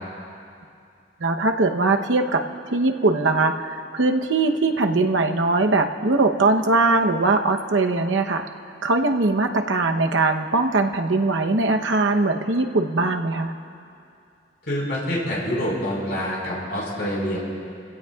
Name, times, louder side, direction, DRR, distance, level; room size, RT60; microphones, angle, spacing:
voice 1, 1.2-2.4 2.7-8.5 8.8-13.5, right 3 dB, 80° right, 5 dB, 0.9 m, -21 dB
voice 2, 14.6-17.4, equal, 60° left, -5 dB, 4.6 m, -26 dB
28.5 x 16.0 x 2.4 m, 2.5 s
head